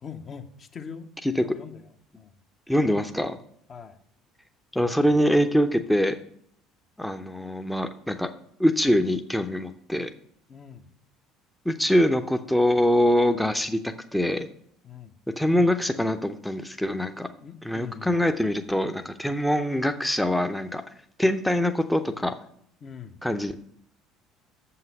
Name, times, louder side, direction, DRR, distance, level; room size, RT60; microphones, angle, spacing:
voice 1, 0.0-2.3 3.7-4.0 10.5-10.9 14.8-15.1 17.4-18.1 22.8-23.2, left 6 dB, 35° left, 7 dB, 0.7 m, -42 dB
voice 2, 2.7-3.4 4.7-6.2 7.0-8.3 8.6-10.1 11.7-14.5 15.4-17.3 17.6-20.8 21.2-22.3 23.2-23.5, equal, 5° left, 7 dB, 0.6 m, -24 dB
7.5 x 5.7 x 6.6 m, 0.67 s
figure-of-eight pair, 60°, 0 cm